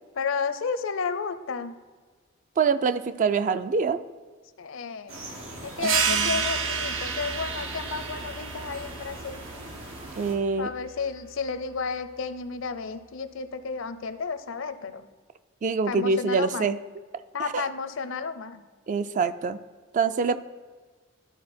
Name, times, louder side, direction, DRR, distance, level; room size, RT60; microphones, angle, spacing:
voice 1, 0.1-1.8 4.6-5.3 5.6-9.4 10.6-15.1 15.9-16.7 17.3-18.6, left 5 dB, 75° left, 12 dB, 0.6 m, -32 dB
voice 2, 2.6-4.0 5.8-6.4 10.2-10.7 15.6-16.8 17.5-17.6 18.9-19.6 19.9-20.4, right 5 dB, 40° right, 12 dB, 0.3 m, -25 dB
sound 1, 5.1-10.3, right 1 dB, 90° right, 1.7 m, -40 dB
sound 2, 5.8-11.0, right 6 dB, 70° right, 0.7 m, -30 dB
12.5 x 4.4 x 4.3 m, 1.5 s
head